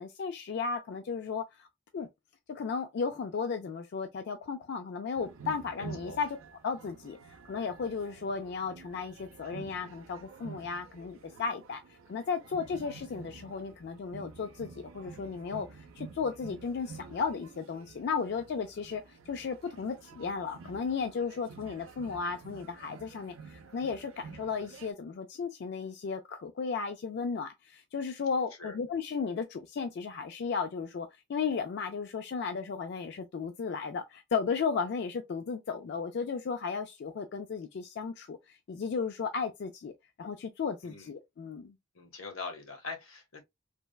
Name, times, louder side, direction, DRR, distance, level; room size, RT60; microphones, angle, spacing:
voice 1, 0.0-1.7 1.9-2.1 2.5-6.3 6.6-7.2 7.4-11.8 12.1-39.9 40.2-41.8, left 5 dB, 55° left, 0.3 m, -35 dB
sound 1, 5.2-24.9, right 5 dB, 80° right, 0.5 m, -50 dB
voice 2, 5.8-6.2 28.6-28.8 40.8-41.1 41.9-43.4, left 4 dB, 85° left, 0.9 m, -42 dB
3.3 x 2.1 x 2.2 m
head